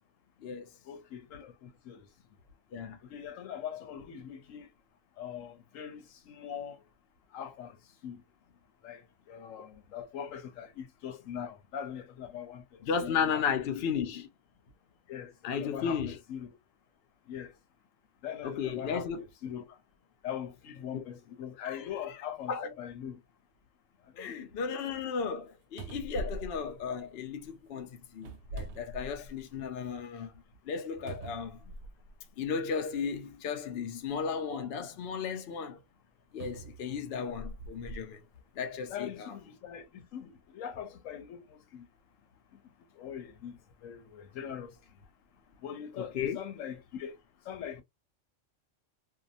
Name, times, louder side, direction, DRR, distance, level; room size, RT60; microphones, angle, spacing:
voice 1, 0.8-2.1 3.0-4.7 5.2-6.8 7.3-8.2 8.8-13.4 15.1-16.5 17.2-17.6 18.2-19.8 20.2-23.2 24.0-24.5 38.9-41.9 42.5-42.6 42.9-44.9 45.6-47.2 47.4-47.8, left 9 dB, 90° left, 1.1 m, -42 dB
voice 2, 12.8-14.3 15.4-16.2 18.4-19.2 21.6-21.7 22.1-22.2 22.5-22.7 24.2-30.3 30.7-31.6 32.4-35.8 36.3-38.2 38.6-39.3 46.0-46.4, left 6 dB, 60° left, 0.8 m, -34 dB
sound 1, 25.4-25.5 25.8-27.5 28.2-29.6 30.0-30.1 31.1-32.2 33.1-33.2 36.4-38.1 38.7-38.9, right 2 dB, 70° right, 0.8 m, -42 dB
2.7 x 2.3 x 2.5 m
omnidirectional pair, 1.3 m